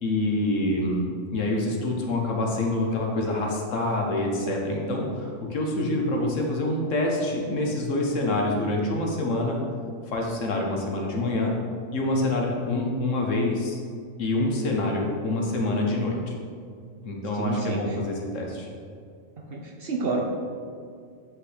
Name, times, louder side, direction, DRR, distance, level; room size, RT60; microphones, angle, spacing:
voice 1, 0.0-9.6 10.1-11.5 11.9-13.8 14.2-16.3 17.0-18.7, left 2 dB, 70° left, 0 dB, 1.3 m, -26 dB
voice 2, 17.3-18.0 19.4-20.2, right 3 dB, 55° right, 0 dB, 0.8 m, -29 dB
7.8 x 5.3 x 3.3 m, 2.2 s
omnidirectional pair, 1.4 m